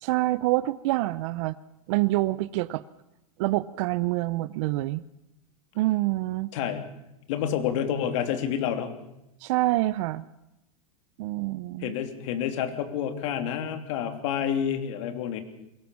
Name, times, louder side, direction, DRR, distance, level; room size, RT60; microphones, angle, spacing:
voice 1, 0.0-1.5 1.9-2.8 3.4-5.0 5.8-6.5 9.4-10.2 11.2-11.9, right 18 dB, 55° right, 15 dB, 0.7 m, -26 dB
voice 2, 6.5-6.8 7.3-8.9 11.8-15.4, left 9 dB, 60° left, 8 dB, 3.1 m, -29 dB
22.5 x 17.5 x 7.1 m, 0.88 s
supercardioid pair, 140°, 18 cm